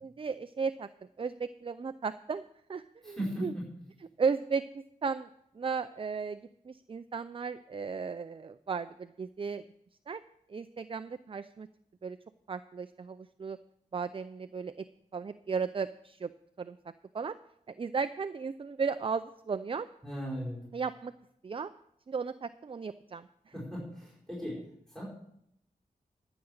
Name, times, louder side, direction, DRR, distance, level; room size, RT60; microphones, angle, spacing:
voice 1, 0.0-0.9 1.2-2.4 2.7-3.2 3.4-3.5 4.2-5.3 5.5-6.4 6.6-9.6 10.1-10.2 10.5-11.7 12.0-12.2 12.5-13.6 13.9-14.8 15.1-16.3 16.6-16.8 17.1-17.4 17.7-19.9 20.7-21.1 21.4-21.7 22.1-23.3, right 5 dB, 40° right, 11 dB, 0.4 m, -35 dB
voice 2, 3.0-3.6 20.0-20.7 23.5-25.0, equal, 5° left, -5 dB, 5.4 m, -37 dB
13.5 x 7.0 x 6.5 m, 0.74 s
wide cardioid pair, 85°, 15 cm